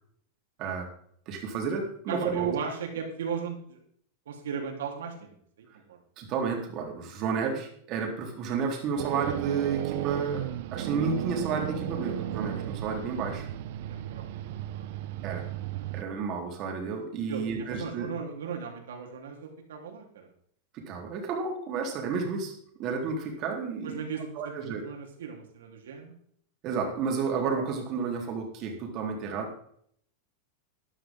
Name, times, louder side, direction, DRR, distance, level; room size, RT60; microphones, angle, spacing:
voice 1, 0.6-0.9 1.3-2.5 6.2-13.5 15.2-15.5 15.9-18.1 20.7-22.5 22.8-24.0 24.4-24.8 26.6-29.5, right 5 dB, 40° right, 2 dB, 3.8 m, -31 dB
voice 2, 2.1-3.8 4.3-6.0 13.8-14.9 15.7-16.0 17.3-20.3 23.8-26.1, right 6 dB, 90° right, 2 dB, 3.8 m, -37 dB
sound 1, 9.0-16.0, right 13 dB, 65° right, 0.9 m, -34 dB
13.5 x 11.5 x 3.8 m, 0.64 s
supercardioid pair, 140°, 0 cm